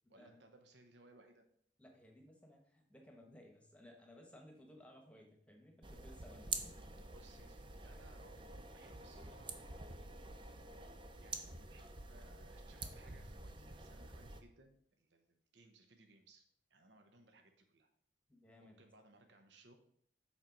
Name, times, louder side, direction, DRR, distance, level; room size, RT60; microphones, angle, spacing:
voice 1, 0.1-1.4 6.3-6.4 7.1-8.5 8.7-10.3 11.1-16.4 16.7-17.9 18.6-19.8, right 2 dB, 75° right, 6 dB, 0.9 m, -64 dB
voice 2, 1.8-6.9 18.3-18.8, left 1 dB, 5° left, 2 dB, 1.0 m, -60 dB
sound 1, 5.8-14.4, right 3 dB, 25° right, 0.6 m, -48 dB
7.2 x 4.5 x 5.2 m, 0.65 s
head